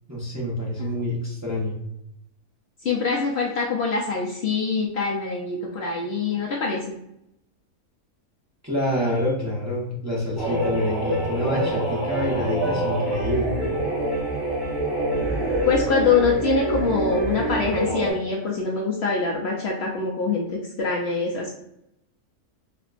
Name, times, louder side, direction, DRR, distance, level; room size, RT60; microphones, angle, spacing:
voice 1, 0.1-1.8 8.6-13.6, equal, 20° right, -6 dB, 0.4 m, -27 dB
voice 2, 2.8-6.8 15.7-21.6, left 4 dB, 70° left, -2 dB, 0.6 m, -24 dB
sound 1, 10.4-18.1, right 1 dB, ahead, 1.0 m, -26 dB
4.5 x 2.2 x 2.4 m, 0.81 s
omnidirectional pair, 1.5 m